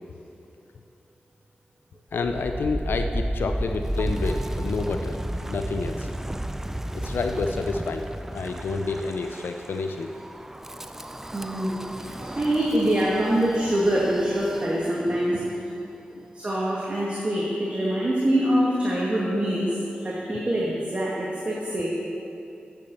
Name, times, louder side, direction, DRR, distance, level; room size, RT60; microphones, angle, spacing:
voice 1, 2.1-6.1 6.9-8.1 8.3-10.1 16.1-16.2, left 4 dB, 85° left, 6 dB, 0.5 m, -29 dB
Wind, 2.1-15.1, right 1 dB, 10° right, 0.4 m, -33 dB
voice 2, 11.3-11.7 12.2-15.4 16.3-19.7 20.0-21.9, right 1 dB, 35° right, -6 dB, 1.9 m, -24 dB
8.7 x 8.3 x 6.8 m, 2.7 s
cardioid pair, 65°, 4 cm